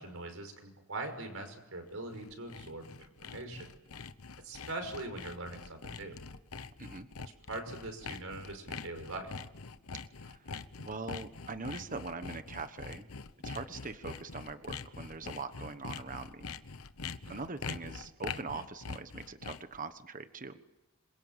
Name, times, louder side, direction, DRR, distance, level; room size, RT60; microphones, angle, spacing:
voice 1, 0.0-3.7 4.4-6.2 7.5-9.3 17.2-17.5, right 2 dB, 70° right, 5 dB, 5.8 m, -42 dB
Sawing, 1.9-19.8, left 5 dB, 85° left, 1.0 m, -44 dB
voice 2, 10.2-13.1 13.4-16.5 17.3-20.6, right 3 dB, 40° right, 10 dB, 1.3 m, -42 dB
27.0 x 23.0 x 9.1 m, 1.0 s
head